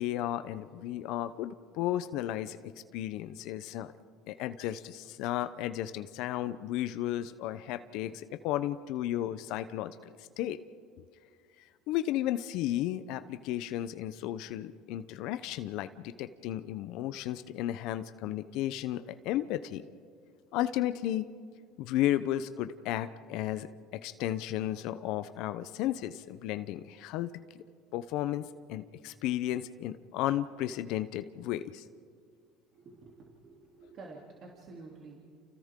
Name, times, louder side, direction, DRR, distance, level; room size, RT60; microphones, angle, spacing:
voice 1, 0.0-2.6 2.9-3.9 4.3-10.6 11.9-19.8 20.5-21.3 21.8-27.6 27.9-31.8, left 13 dB, 70° left, 12 dB, 0.7 m, -34 dB
voice 2, 32.7-35.2, right 3 dB, 50° right, -2 dB, 3.0 m, -50 dB
29.5 x 29.5 x 3.8 m, 2.2 s
supercardioid pair, 105°, 0 cm